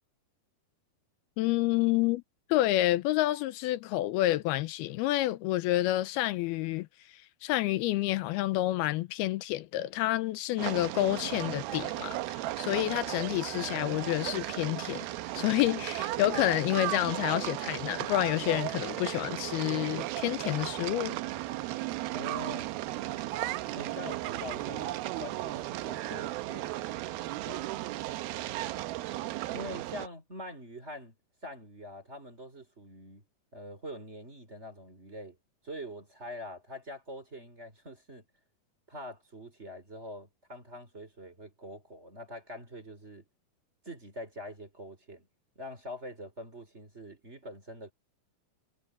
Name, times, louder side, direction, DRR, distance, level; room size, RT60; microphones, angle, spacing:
voice 1, 1.4-2.2 2.5-6.9 7.1-15.1 15.3-21.2, left 16 dB, 85° left, 2.7 m, -29 dB
sound 1, 10.6-30.1, right 16 dB, 80° right, 2.7 m, -35 dB
voice 2, 22.1-22.7 23.7-26.7 27.4-27.7 29.5-31.2 31.4-33.2 33.5-35.4 35.6-38.3 38.9-43.3 43.8-45.3 45.6-47.9, equal, 15° right, 4.0 m, -44 dB
omnidirectional pair, 4.4 m